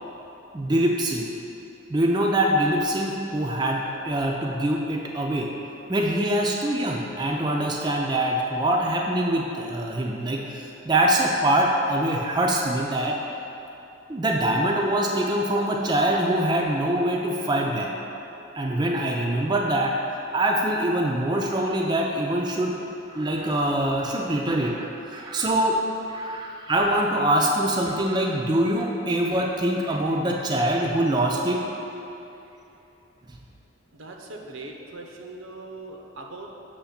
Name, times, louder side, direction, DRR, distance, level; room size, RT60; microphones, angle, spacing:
voice 1, 0.5-1.3 1.9-5.5 5.9-13.2 14.1-17.9 18.5-19.9 20.3-22.8 23.1-24.9 25.1-25.8 26.1-31.6, right 1 dB, 20° right, 0 dB, 0.4 m, -24 dB
voice 2, 33.9-36.5, right 2 dB, 85° right, 1 dB, 0.7 m, -40 dB
7.0 x 3.1 x 5.7 m, 2.9 s
head